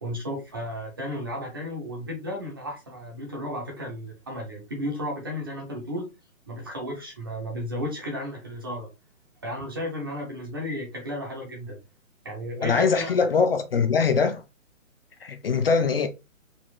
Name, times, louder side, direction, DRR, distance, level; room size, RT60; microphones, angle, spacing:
voice 1, 0.0-6.1 6.5-8.9 9.4-11.8 12.2-13.1, equal, 15° right, 0.5 m, -33 dB
voice 2, 12.6-14.4 15.2-16.1, left 5 dB, 45° left, 0.5 m, -22 dB
4.2 x 2.8 x 2.3 m
hypercardioid pair, 155°, 41 cm